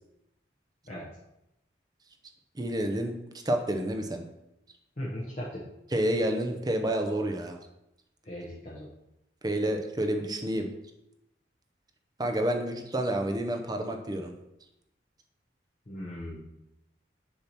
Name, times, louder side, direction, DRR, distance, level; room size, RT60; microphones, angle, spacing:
voice 1, 2.6-3.1 3.4-4.2 5.9-7.6 9.4-10.7 12.2-14.3, right 1 dB, 20° right, 5 dB, 0.6 m, -29 dB
voice 2, 5.0-5.6 8.2-8.9 15.9-16.4, equal, 40° left, -5 dB, 0.8 m, -38 dB
6.7 x 2.9 x 5.8 m, 0.89 s
head